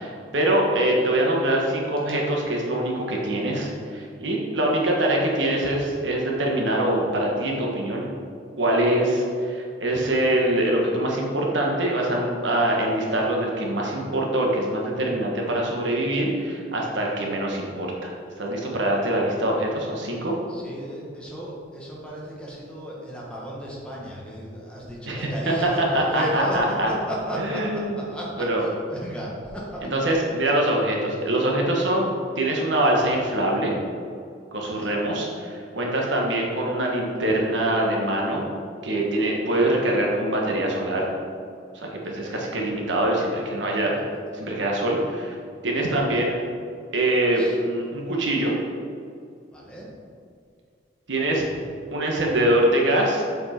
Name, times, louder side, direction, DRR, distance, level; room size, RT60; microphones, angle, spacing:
voice 1, 0.0-8.1 8.6-18.1 18.4-20.3 25.1-25.3 25.9-26.9 27.4-28.0 28.4-28.6 29.8-32.1 32.3-33.7 34.5-38.4 38.8-41.1 41.7-43.9 44.3-45.3 45.6-46.3 46.9-48.5 51.1-51.5 51.9-53.2, right 1 dB, 80° right, -1 dB, 1.4 m, -24 dB
voice 2, 20.5-30.1 34.6-35.0 42.0-42.4 47.3-47.6 49.5-49.9, equal, 5° left, -5 dB, 1.4 m, -34 dB
7.4 x 5.3 x 4.4 m, 2.3 s
head